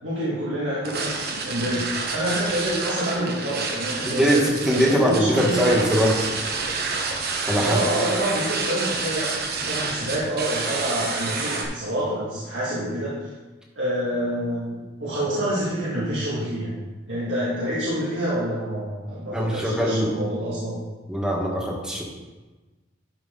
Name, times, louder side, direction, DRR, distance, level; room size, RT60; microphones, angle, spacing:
voice 1, 0.0-5.7 7.6-13.1 13.8-16.8 17.1-20.8, right 1 dB, 80° right, -9 dB, 2.1 m, -27 dB
sound 1, 0.8-11.6, right 4 dB, 55° right, 1.2 m, -29 dB
voice 2, 4.0-4.4 4.6-6.2 7.5-7.8 19.3-20.1 21.1-22.0, equal, 5° right, -2 dB, 1.5 m, -21 dB
11.5 x 5.2 x 3.9 m, 1.2 s
head